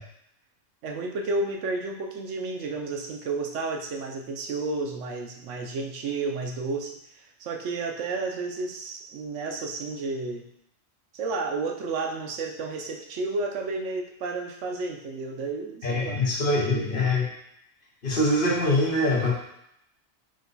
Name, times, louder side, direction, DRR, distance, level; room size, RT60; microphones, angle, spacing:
voice 1, 0.8-10.4 11.1-16.9, right 3 dB, 80° right, 2 dB, 1.0 m, -32 dB
voice 2, 15.8-17.2 18.0-19.3, left 1 dB, 50° left, -3 dB, 1.1 m, -23 dB
5.0 x 2.2 x 3.9 m, 0.76 s
omnidirectional pair, 1.2 m